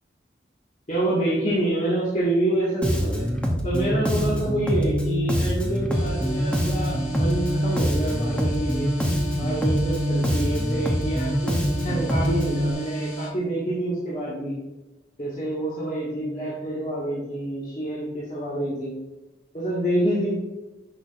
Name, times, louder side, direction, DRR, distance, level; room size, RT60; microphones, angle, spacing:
voice 1, 0.9-3.3 3.6-8.9 9.4-14.6 15.2-18.9 19.5-20.3, right 1 dB, 40° left, -8 dB, 1.9 m, -27 dB
Bass guitar, 2.8-12.7, equal, 5° left, 0.8 m, -25 dB
sound 1, 5.9-13.3, right 2 dB, 65° left, 2.6 m, -33 dB
10.5 x 5.9 x 2.6 m, 1.0 s
head